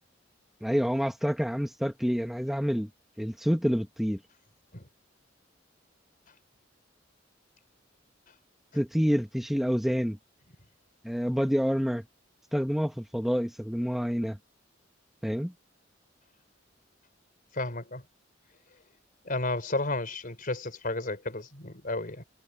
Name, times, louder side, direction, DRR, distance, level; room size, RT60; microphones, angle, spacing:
voice 1, 0.6-2.9 3.2-4.2 8.7-10.2 11.0-12.0 12.5-14.4 15.2-15.5, equal, ahead, 1.5 m, -28 dB
voice 2, 17.5-18.0 19.2-22.2, left 2 dB, 45° left, 4.5 m, -32 dB
head